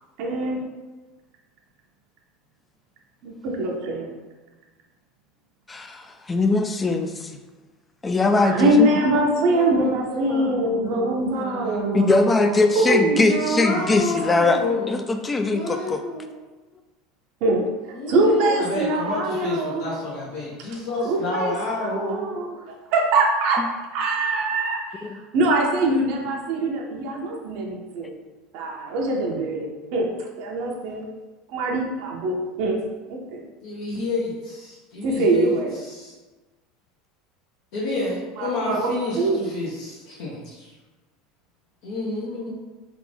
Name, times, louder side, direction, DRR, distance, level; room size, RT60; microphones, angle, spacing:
voice 1, 0.2-0.6 3.2-4.1 8.4-13.5 17.4-19.9 21.0-21.5 21.8-22.6 22.9-28.1 28.5-30.1 30.4-31.1 31.5-32.8 33.1-33.4 35.0-35.8 38.4-39.4, right 2 dB, 65° right, 0 dB, 0.6 m, -23 dB
voice 2, 5.7-7.3 8.0-8.9 11.9-14.6 14.9-16.0 25.0-25.2, left 3 dB, 15° left, 7 dB, 0.3 m, -21 dB
voice 3, 9.5-12.1 13.3-15.1 15.5-16.4 17.9-22.4 33.6-36.1 37.7-40.7 41.8-42.5, left 2 dB, 70° left, -6 dB, 0.8 m, -29 dB
3.3 x 2.5 x 3.4 m, 1.2 s
supercardioid pair, 115°, 0 cm